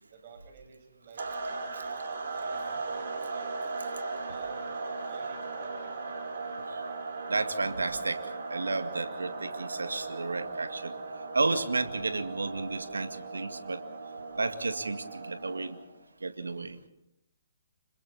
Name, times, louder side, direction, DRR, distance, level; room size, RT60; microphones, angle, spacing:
voice 1, 0.0-3.7 4.3-6.2, right 6 dB, 45° right, 5 dB, 6.6 m, -51 dB
sound 1, 1.2-15.9, right 3 dB, 60° right, 7.5 m, -38 dB
voice 2, 7.3-10.9 11.3-13.8 14.4-15.8 16.2-16.8, right 3 dB, 85° right, 9 dB, 2.1 m, -32 dB
29.5 x 27.0 x 4.2 m, 0.79 s
figure-of-eight pair, 135°, 0 cm